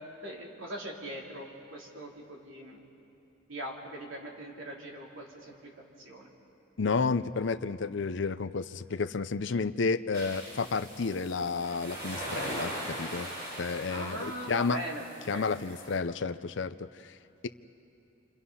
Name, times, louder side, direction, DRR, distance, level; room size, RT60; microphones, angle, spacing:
voice 1, 0.2-1.4 1.7-2.8 3.5-5.7 6.0-6.3 13.9-15.1 15.3-15.5, right 1 dB, 80° right, -2 dB, 3.7 m, -40 dB
voice 2, 6.8-13.3 13.6-14.8 15.3-16.9, left 4 dB, 65° left, 11 dB, 0.6 m, -31 dB
sound 1, 10.1-16.0, right 1 dB, 50° right, 6.3 m, -40 dB
29.0 x 26.5 x 5.7 m, 2.7 s
head